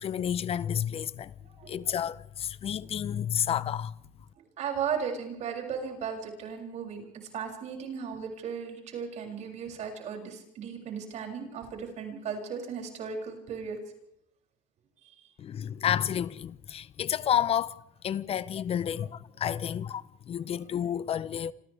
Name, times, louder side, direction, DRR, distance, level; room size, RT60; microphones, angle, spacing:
voice 1, 0.0-1.3 1.7-3.9 15.4-21.5, left 9 dB, 45° left, 0.8 m, -30 dB
voice 2, 4.6-7.0 7.3-13.8, right 6 dB, 60° right, 7.2 m, -36 dB
29.0 x 26.0 x 3.5 m
cardioid pair, 120°, 14 cm